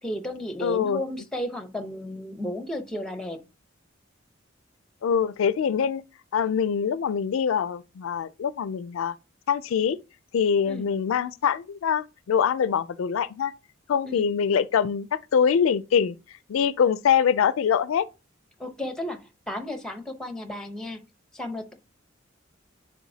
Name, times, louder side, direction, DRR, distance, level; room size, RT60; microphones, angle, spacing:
voice 1, 0.0-3.4 10.7-10.9 14.0-14.3 18.6-21.0 21.3-21.7, left 1 dB, 5° left, 0.7 m, -33 dB
voice 2, 0.6-1.0 5.0-6.0 6.3-9.1 9.5-10.0 10.3-13.5 13.9-16.2 16.5-18.1, left 7 dB, 85° left, 0.4 m, -24 dB
10.0 x 3.4 x 2.7 m
head